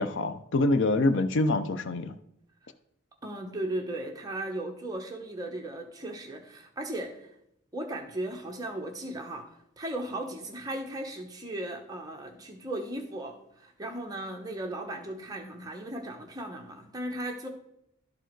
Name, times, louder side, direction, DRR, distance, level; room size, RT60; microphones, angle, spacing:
voice 1, 0.0-2.1, left 2 dB, 55° left, 11 dB, 0.5 m, -25 dB
voice 2, 3.2-7.3 7.7-17.5, right 1 dB, 15° right, 2 dB, 0.9 m, -36 dB
12.0 x 4.6 x 4.5 m, 0.78 s
head